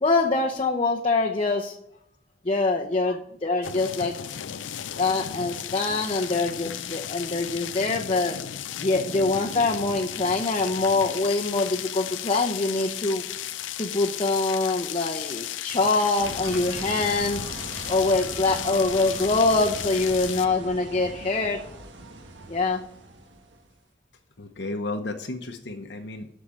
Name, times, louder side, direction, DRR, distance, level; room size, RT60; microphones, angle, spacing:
voice 1, 0.0-1.8 2.4-4.1 4.7-8.4 8.8-13.2 13.8-17.5 17.9-21.6 22.5-22.8, left 3 dB, 30° left, 0 dB, 0.8 m, -24 dB
sound 1, 3.6-20.5, left 11 dB, 85° left, 0.5 m, -35 dB
voice 2, 4.9-5.2 24.4-26.3, left 2 dB, 65° left, 4 dB, 1.0 m, -34 dB
sound 2, 16.2-23.7, right 1 dB, 75° right, 1.4 m, -39 dB
8.3 x 6.5 x 7.6 m, 0.74 s
head